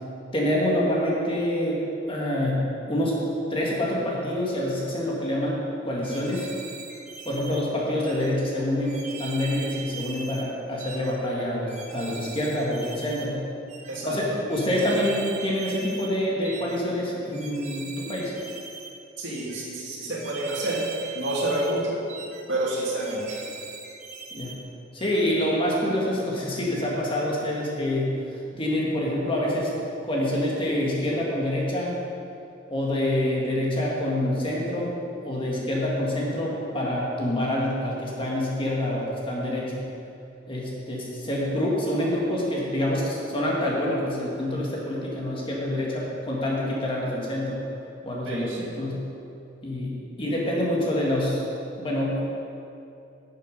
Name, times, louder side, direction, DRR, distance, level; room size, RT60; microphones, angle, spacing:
voice 1, 0.3-1.8 2.1-3.2 3.5-6.5 7.3-13.4 14.0-18.3 24.3-24.6 24.9-28.1 28.6-29.7 30.0-32.0 32.7-34.9 35.2-39.8 40.5-47.6 48.0-49.0 49.6-51.4 51.8-52.2, left 1 dB, 25° left, -4 dB, 1.8 m, -26 dB
sound 1, 6.0-7.6 8.0-8.3 8.9-10.5 10.8-11.1 11.7-13.3 13.7-14.0 14.5-16.1 16.4-16.8 17.3-18.9 19.3-19.6 20.1-21.8 22.1-22.4 23.0-24.6 25.0-25.3, right 5 dB, 35° right, 1.1 m, -40 dB
voice 2, 13.9-14.4 19.2-20.9 21.1-23.4 48.3-48.9, right 1 dB, 65° right, -4 dB, 2.1 m, -29 dB
11.5 x 6.6 x 5.3 m, 2.7 s
head